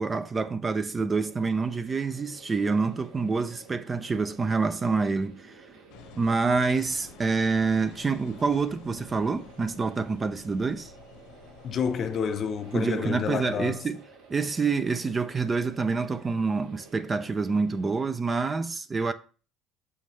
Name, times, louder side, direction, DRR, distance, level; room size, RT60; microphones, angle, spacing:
voice 1, 0.0-5.7 6.2-10.9 12.7-14.0 14.3-19.1, right 4 dB, 20° right, 0.4 m, -27 dB
sound 1, 1.2-18.1, right 4 dB, 90° right, 2.0 m, -53 dB
Engine, 5.9-12.9, left 6 dB, 85° left, 1.2 m, -50 dB
voice 2, 11.6-13.8, left 7 dB, 35° left, 0.6 m, -29 dB
6.5 x 5.6 x 3.1 m
cardioid pair, 145°, 0 cm